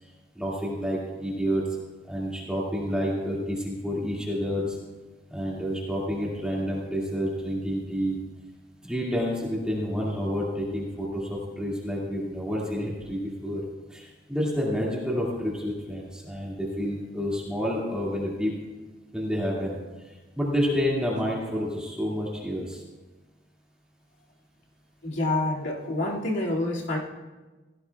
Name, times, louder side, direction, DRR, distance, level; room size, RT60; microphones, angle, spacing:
voice 1, 0.4-1.6 2.0-4.8 5.3-8.2 8.8-13.6 13.9-18.5 19.1-19.8 20.1-22.8, equal, 5° right, -5 dB, 2.1 m, -29 dB
voice 2, 25.0-27.0, left 2 dB, 70° left, -3 dB, 2.2 m, -27 dB
16.5 x 14.5 x 2.3 m, 1.2 s
head